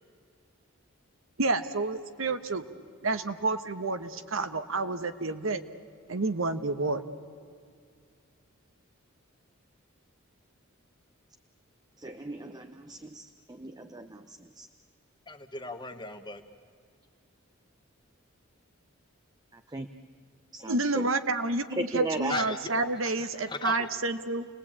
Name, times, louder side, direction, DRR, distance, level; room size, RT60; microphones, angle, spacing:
voice 1, 1.4-2.6 3.0-5.6 6.1-7.0 20.7-24.5, right 3 dB, 70° right, 10 dB, 1.1 m, -29 dB
voice 2, 12.0-14.7 19.5-19.9 20.5-21.1 21.7-22.4, right 2 dB, 20° right, 7 dB, 0.7 m, -37 dB
voice 3, 15.3-16.4 22.3-22.6 23.2-23.9, left 3 dB, 20° left, 8 dB, 1.2 m, -36 dB
29.5 x 19.5 x 8.7 m, 2.2 s
head